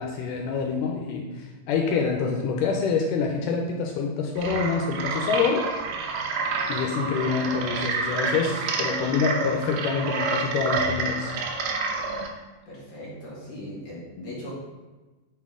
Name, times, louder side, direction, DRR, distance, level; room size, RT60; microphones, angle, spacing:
voice 1, 0.0-5.7 6.7-11.3, left 5 dB, 80° left, 1 dB, 2.1 m, -26 dB
sound 1, 4.4-12.3, right 4 dB, 75° right, 2.3 m, -28 dB
voice 2, 12.7-14.5, left 1 dB, 45° left, -5 dB, 1.8 m, -39 dB
8.4 x 4.2 x 3.6 m, 1.2 s
omnidirectional pair, 3.9 m